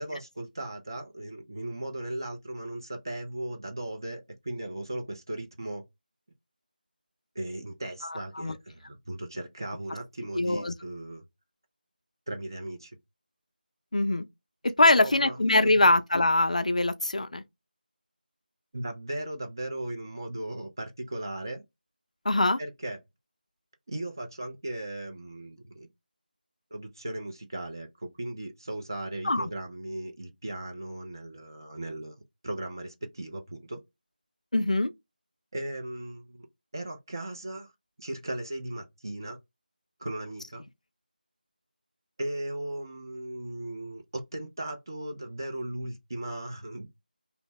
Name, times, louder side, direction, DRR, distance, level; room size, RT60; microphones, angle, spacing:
voice 1, 0.0-5.8 7.3-11.2 12.3-12.9 15.0-15.9 18.7-21.6 22.6-23.0 23.9-25.9 26.7-32.1 32.4-33.8 35.5-36.5 36.7-37.7 38.0-39.4 40.0-40.7 42.2-46.9, right 1 dB, 25° right, 0.4 m, -37 dB
voice 2, 10.4-10.7 13.9-14.2 14.6-17.4 22.3-22.6 29.2-29.4 34.5-34.9, left 2 dB, 45° left, 0.4 m, -23 dB
2.7 x 2.0 x 3.0 m
figure-of-eight pair, 175°, 5 cm